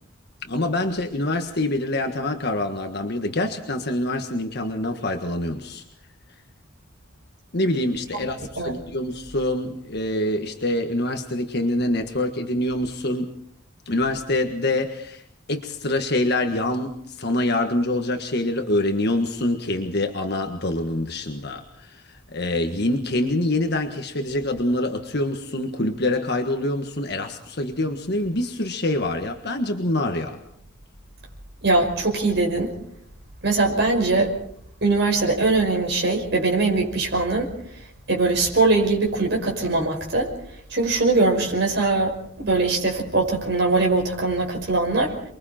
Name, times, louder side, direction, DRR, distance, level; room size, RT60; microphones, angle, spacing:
voice 1, 0.4-5.8 7.5-13.3 13.8-15.2 15.5-30.4, left 1 dB, 55° left, 5 dB, 1.6 m, -25 dB
voice 2, 31.6-32.7 33.4-34.3 34.8-37.5 38.1-40.3 40.7-45.3, right 3 dB, 55° right, 1 dB, 5.4 m, -21 dB
29.5 x 22.5 x 4.4 m, 0.65 s
head